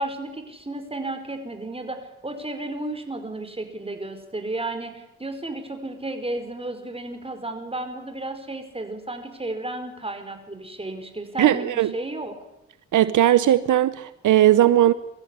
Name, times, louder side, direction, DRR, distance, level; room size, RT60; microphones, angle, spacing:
voice 1, 0.0-11.6 11.9-12.3, right 2 dB, 20° right, 5.0 m, -33 dB
voice 2, 11.4-11.9 12.9-14.9, right 12 dB, 80° right, 0.9 m, -18 dB
24.0 x 14.5 x 9.8 m
cardioid pair, 75°, 30 cm